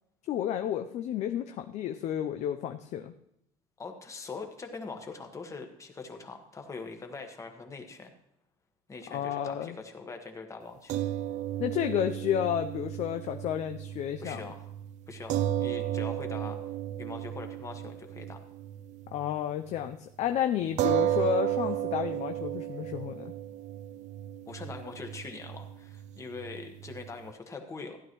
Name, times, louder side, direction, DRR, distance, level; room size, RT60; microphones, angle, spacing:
voice 1, 0.3-3.1 9.1-9.8 11.6-14.5 19.1-23.3, left 10 dB, 55° left, 7 dB, 0.5 m, -31 dB
voice 2, 3.8-8.1 8.9-11.0 14.2-14.6 15.1-16.6 17.0-18.4 24.5-28.0, left 4 dB, 20° left, 5 dB, 1.4 m, -42 dB
sound 1, 10.9-19.4 19.7-19.9 20.8-27.3, right 12 dB, 55° right, 0.5 m, -34 dB
15.0 x 11.0 x 3.1 m, 0.78 s
cardioid pair, 135°, 14 cm